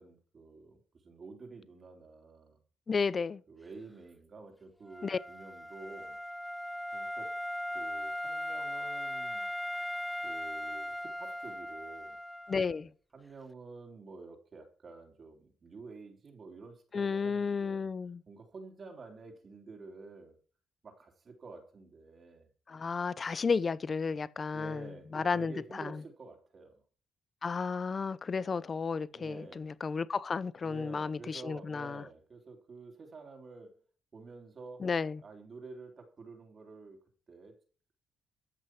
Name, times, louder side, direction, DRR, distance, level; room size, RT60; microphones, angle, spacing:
voice 1, 0.0-2.6 3.5-6.2 6.9-7.4 7.7-9.5 10.2-12.2 13.1-17.9 18.3-20.4 20.8-22.5 24.5-26.8 29.1-29.7 30.6-33.8 34.1-34.9 35.2-37.0 37.3-37.6, right 3 dB, 45° right, 3.6 m, -50 dB
voice 2, 2.9-3.4 5.0-5.2 12.5-12.9 16.9-18.2 22.7-25.8 27.4-32.0 34.8-35.2, left 5 dB, 35° left, 0.7 m, -33 dB
Wind instrument woodwind instrument, 4.9-12.7, left 1 dB, 5° left, 0.4 m, -38 dB
14.0 x 6.3 x 6.1 m
cardioid pair, 90°, 0 cm